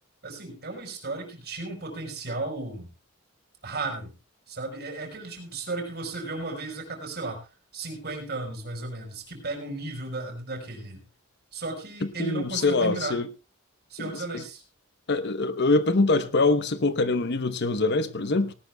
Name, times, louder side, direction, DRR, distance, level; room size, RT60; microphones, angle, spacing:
voice 1, 0.2-2.9 3.6-4.1 4.5-7.4 7.7-11.0 11.5-13.2 13.9-14.6, right 2 dB, 55° right, 1 dB, 5.0 m, -34 dB
voice 2, 12.0-13.3 14.0-14.4 15.1-18.5, left 3 dB, 55° left, 10 dB, 1.0 m, -24 dB
19.0 x 18.5 x 2.3 m, 0.32 s
head